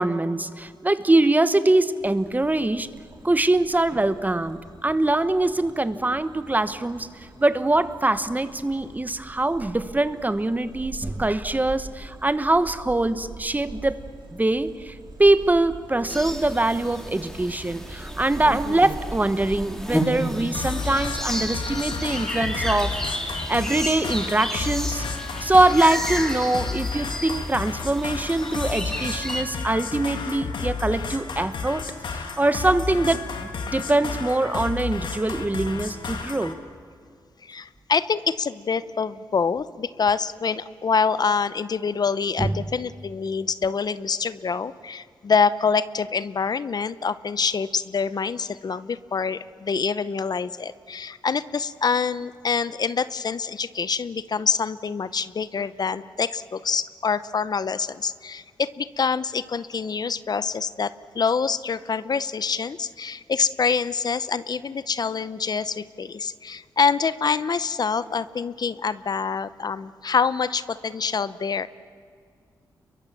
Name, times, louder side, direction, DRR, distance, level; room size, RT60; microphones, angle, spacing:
voice 1, 0.0-2.9 3.2-7.1 7.4-14.0 14.3-23.0 23.5-25.0 25.4-31.8 32.1-36.6 42.4-42.5, right 2 dB, 20° right, 12 dB, 1.2 m, -23 dB
sound 1, 2.0-21.8, right 2 dB, 55° right, 4.6 m, -43 dB
sound 2, 16.1-29.4, equal, 5° left, 3.4 m, -32 dB
voice 2, 18.5-18.8 37.4-71.7, left 5 dB, 55° left, 15 dB, 0.8 m, -26 dB
sound 3, 20.5-36.5, left 4 dB, 75° left, 2.3 m, -32 dB
29.5 x 22.5 x 7.5 m, 2.2 s
cardioid pair, 70°, 8 cm